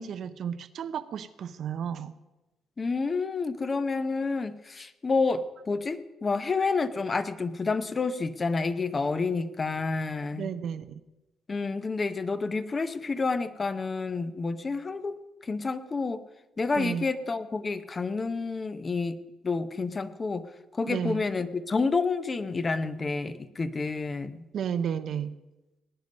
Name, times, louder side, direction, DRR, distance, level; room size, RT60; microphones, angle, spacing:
voice 1, 0.0-2.1 10.3-11.0 16.7-17.1 20.8-21.3 24.5-25.4, right 8 dB, 65° right, 12 dB, 0.6 m, -33 dB
voice 2, 2.8-10.5 11.5-16.2 16.6-20.4 20.7-24.4, left 4 dB, 30° left, 11 dB, 0.7 m, -29 dB
18.5 x 9.4 x 5.3 m, 1.1 s
cardioid pair, 90°, 0 cm